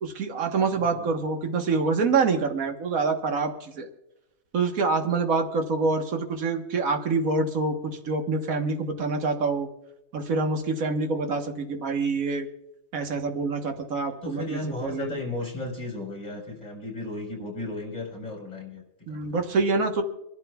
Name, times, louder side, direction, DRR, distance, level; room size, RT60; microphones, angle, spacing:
voice 1, 0.0-3.9 4.5-9.7 10.1-12.5 12.9-15.1 19.1-20.0, right 4 dB, 75° right, 4 dB, 1.7 m, -26 dB
voice 2, 0.7-1.1 9.0-9.2 14.2-18.8 19.1-19.4, left 2 dB, 35° left, -1 dB, 4.7 m, -35 dB
28.5 x 12.0 x 2.3 m, 0.90 s
omnidirectional pair, 1.5 m